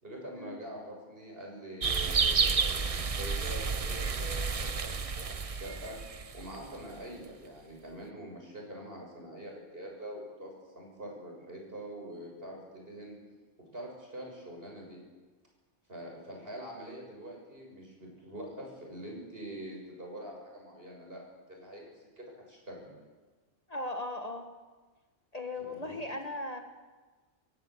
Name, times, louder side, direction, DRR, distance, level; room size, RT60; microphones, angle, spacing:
voice 1, 0.0-6.0 6.3-10.5 10.8-13.2 13.7-15.0 15.9-22.9 25.6-26.1, right 1 dB, 55° right, -1 dB, 7.1 m, -44 dB
sound 1, 1.8-6.8, right 5 dB, 35° right, 0.8 m, -30 dB
voice 2, 23.7-24.5 25.3-26.6, left 2 dB, 35° left, 4 dB, 1.8 m, -37 dB
26.5 x 16.0 x 8.0 m, 1.3 s
omnidirectional pair, 1.1 m